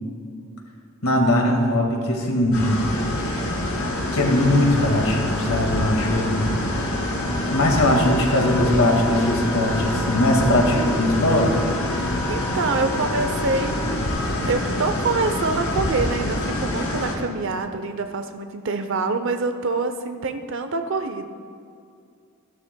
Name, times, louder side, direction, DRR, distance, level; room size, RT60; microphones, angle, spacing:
voice 1, 1.0-2.8 4.1-6.4 7.5-11.5, left 1 dB, 90° left, 1 dB, 1.9 m, -20 dB
sound 1, 2.5-17.1, left 1 dB, 70° left, 2.4 m, -26 dB
sound 2, 3.8-13.9, left 2 dB, 5° left, 0.9 m, -33 dB
voice 2, 8.2-9.0 12.3-21.3, right 3 dB, 60° right, 8 dB, 0.7 m, -26 dB
14.5 x 12.0 x 2.3 m, 2.4 s
head